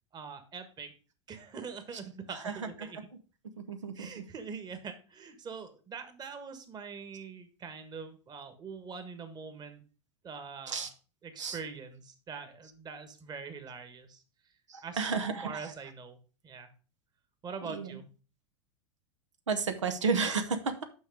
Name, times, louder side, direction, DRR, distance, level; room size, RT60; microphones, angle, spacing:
voice 1, 0.1-0.9 1.3-3.0 3.9-9.8 10.2-10.9 11.2-14.2 14.8-15.1 15.4-16.2 16.4-16.7 17.4-18.1, right 5 dB, 25° right, 8 dB, 1.5 m, -43 dB
voice 2, 2.3-2.9 3.6-4.2 10.7-10.9 11.4-11.6 14.7-15.7 17.6-18.0 19.5-20.8, right 5 dB, 90° right, 7 dB, 0.9 m, -33 dB
6.4 x 5.5 x 4.9 m, 0.36 s
hypercardioid pair, 100°, 15 cm